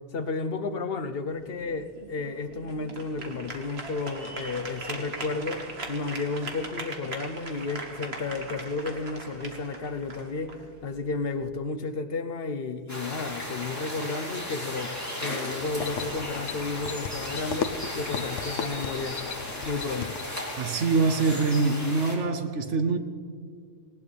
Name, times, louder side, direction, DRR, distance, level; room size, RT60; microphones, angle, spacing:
voice 1, 0.1-14.9 15.2-19.2 19.7-20.2, left 3 dB, 55° left, 1.0 m, -32 dB
sound 1, 1.3-11.4, right 2 dB, 60° right, 2.0 m, -40 dB
sound 2, 12.9-22.2, left 1 dB, 15° left, 2.8 m, -36 dB
sound 3, 15.6-20.5, left 7 dB, 85° left, 1.1 m, -36 dB
voice 2, 20.6-23.0, right 3 dB, 75° right, 1.1 m, -24 dB
19.0 x 18.5 x 3.4 m
omnidirectional pair, 1.2 m